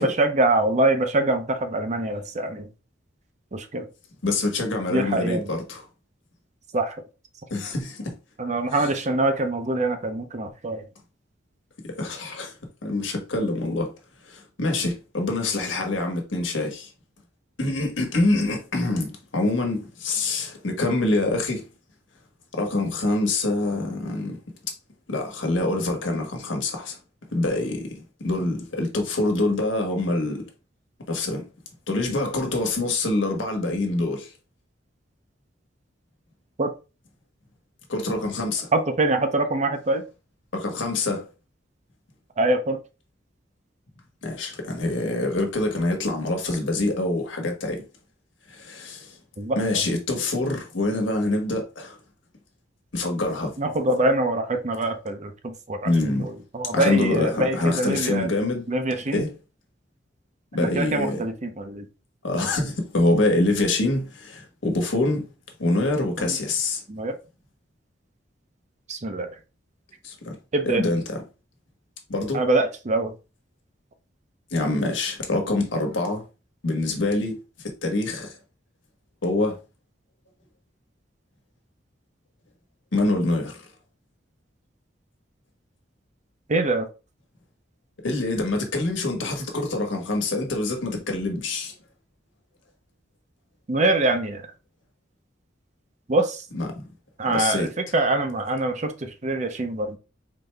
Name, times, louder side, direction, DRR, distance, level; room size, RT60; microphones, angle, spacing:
voice 1, 0.0-2.7 3.5-3.9 4.9-5.5 6.7-7.0 8.4-10.8 36.6-36.7 38.7-40.0 42.4-42.8 49.4-49.7 53.6-58.3 58.7-59.2 60.6-61.9 66.2-66.4 66.9-67.1 68.9-69.3 70.5-70.9 72.3-73.1 86.5-86.9 93.7-94.5 96.1-96.5 97.2-100.0, right 2 dB, 40° right, 0.6 m, -24 dB
voice 2, 4.2-5.8 7.5-8.1 8.8-8.9 11.8-12.6 12.8-13.9 14.3-16.9 17.6-21.7 22.5-24.4 25.1-27.0 27.3-30.4 31.1-31.4 31.9-34.3 37.9-38.7 40.5-41.3 44.2-47.8 48.5-49.2 49.6-52.0 52.9-53.6 55.8-56.3 56.7-58.6 59.1-59.3 60.5-61.2 62.2-65.3 65.6-66.8 70.0-70.4 70.6-71.2 72.1-72.4 74.5-76.2 76.6-77.4 77.8-78.4 79.2-79.6 82.9-83.6 88.0-91.7 96.5-96.8 97.3-97.7, left 2 dB, 80° left, 1.2 m, -25 dB
4.0 x 3.2 x 3.3 m
head